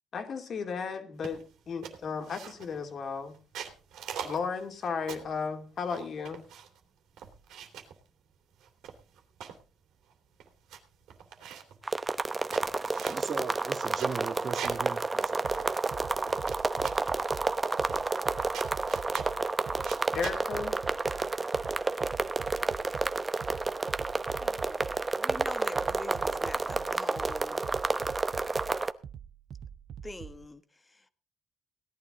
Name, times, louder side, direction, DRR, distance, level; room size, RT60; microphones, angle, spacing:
voice 1, 0.1-3.4 4.2-6.4 20.1-20.7, left 5 dB, 55° left, 2.7 m, -34 dB
sound 1, 1.2-1.5 1.8-2.8 3.3-5.4 5.9-6.8 7.2-8.0 8.6-9.6 10.1-10.2 10.4-10.8 11.1-11.8 12.3-14.9 15.2-15.3 15.5-16.6 16.8-17.1 17.9-18.3 18.5-19.4 19.8-20.4, right 8 dB, 85° right, 2.9 m, -43 dB
sound 2, 11.8-28.9, right 3 dB, 25° right, 0.9 m, -30 dB
voice 2, 13.1-15.6, right 5 dB, 45° right, 2.0 m, -38 dB
sound 3, 15.4-30.5, right 8 dB, 65° right, 0.8 m, -45 dB
voice 3, 24.4-27.7 30.0-31.0, left 2 dB, 20° left, 1.4 m, -45 dB
17.5 x 11.0 x 3.9 m
cardioid pair, 90°, 0 cm